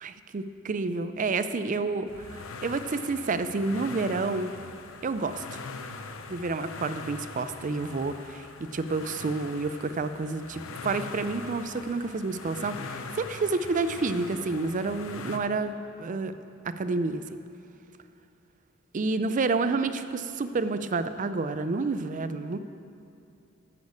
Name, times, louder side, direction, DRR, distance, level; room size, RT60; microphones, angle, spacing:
voice 1, 0.0-4.5 5.0-5.6 6.3-8.5 8.7-16.3 16.6-17.4 18.9-22.6, right 3 dB, 40° right, 11 dB, 0.4 m, -29 dB
sound 1, 2.1-15.4, left 4 dB, 80° left, 0.7 m, -42 dB
9.8 x 6.4 x 8.3 m, 2.6 s
head